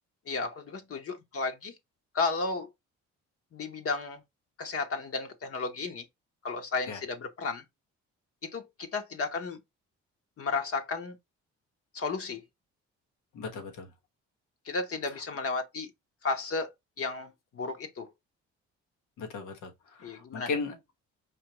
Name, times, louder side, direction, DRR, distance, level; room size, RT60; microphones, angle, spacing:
voice 1, 0.3-1.7 2.1-2.7 3.5-4.2 4.6-6.0 6.4-7.6 8.4-9.6 10.4-11.1 11.9-12.4 14.7-15.9 16.2-16.7 17.0-18.1 20.0-20.5, left 4 dB, 50° left, 1.0 m, -33 dB
voice 2, 13.3-13.9 15.1-15.2 19.2-20.8, left 4 dB, 90° left, 1.3 m, -36 dB
5.1 x 2.8 x 3.0 m
cardioid pair, 90°, 30 cm